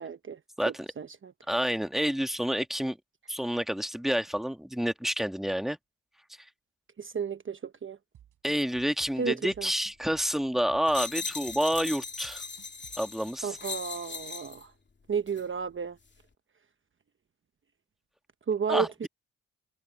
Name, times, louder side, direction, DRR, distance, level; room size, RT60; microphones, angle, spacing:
voice 1, 0.0-0.4 0.7-1.3 7.0-8.0 9.2-9.7 13.4-14.7 15.1-16.0 18.5-19.1, right 6 dB, 40° right, 1.0 m, -32 dB
voice 2, 0.6-0.9 1.5-3.0 3.3-5.8 8.4-12.4 13.0-13.6 18.7-19.1, equal, ahead, 1.8 m, -29 dB
sound 1, 8.1-13.4, right 10 dB, 80° right, 6.2 m, -56 dB
sound 2, 10.9-14.6 15.3-15.5, left 5 dB, 35° left, 2.5 m, -38 dB
cardioid pair, 80°, 32 cm